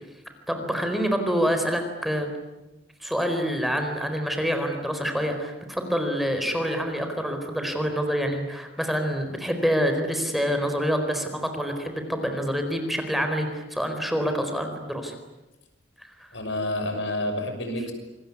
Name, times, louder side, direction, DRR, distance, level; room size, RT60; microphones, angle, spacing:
voice 1, 0.5-2.3 3.0-15.1 16.0-16.3, equal, ahead, 5 dB, 4.4 m, -27 dB
voice 2, 16.3-17.9, left 1 dB, 75° left, 6 dB, 6.1 m, -29 dB
27.5 x 22.5 x 9.8 m, 1.0 s
head